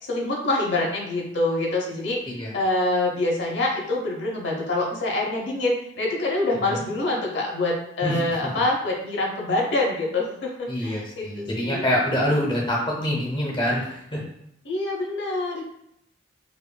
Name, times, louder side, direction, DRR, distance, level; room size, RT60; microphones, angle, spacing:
voice 1, 0.0-2.2 2.5-11.8 14.6-15.7, left 2 dB, 65° left, -2 dB, 0.7 m, -25 dB
voice 2, 10.7-14.2, equal, 25° left, -3 dB, 0.7 m, -25 dB
4.9 x 2.5 x 2.2 m, 0.76 s
head